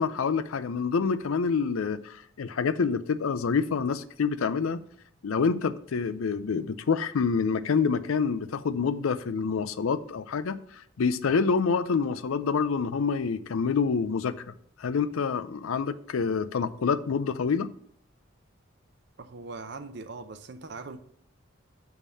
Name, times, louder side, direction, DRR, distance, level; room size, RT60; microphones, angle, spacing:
voice 1, 0.0-4.8 5.2-10.6 11.0-14.3 14.8-17.7, left 5 dB, 85° left, 0.4 m, -27 dB
voice 2, 19.2-21.0, right 3 dB, 55° right, 0.6 m, -40 dB
6.9 x 3.6 x 6.1 m
head